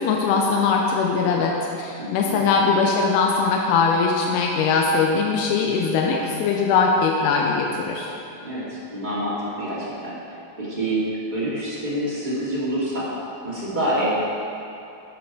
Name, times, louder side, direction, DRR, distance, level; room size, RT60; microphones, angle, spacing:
voice 1, 0.0-8.2, left 4 dB, 90° left, 0 dB, 2.7 m, -21 dB
voice 2, 2.0-2.4 8.4-10.2 10.6-11.0 11.3-13.1 13.4-14.1, right 1 dB, 15° right, -9 dB, 1.7 m, -27 dB
11.5 x 8.2 x 4.8 m, 2.7 s
omnidirectional pair, 4.8 m